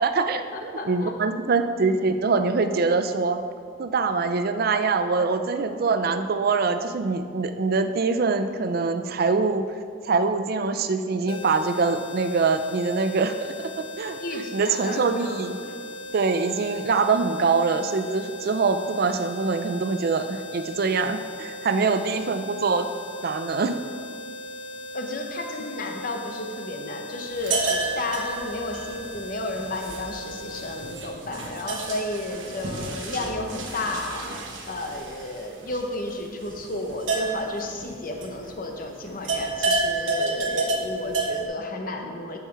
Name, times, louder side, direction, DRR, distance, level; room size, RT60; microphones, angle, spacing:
voice 1, 0.0-3.4 3.8-9.6 10.0-13.5 13.8-15.6 16.1-22.9 23.2-23.8, right 4 dB, 55° right, 9 dB, 0.4 m, -24 dB
voice 2, 0.5-1.1 5.2-5.3 14.2-15.7 24.9-34.2 34.7-42.4, left 2 dB, 50° left, 3 dB, 1.0 m, -32 dB
sound 1, 11.3-31.0, left 1 dB, 25° left, 0.5 m, -39 dB
sound 2, 27.3-38.8 39.0-41.4, right 3 dB, 90° right, 1.1 m, -30 dB
8.9 x 6.4 x 4.6 m, 2.1 s
head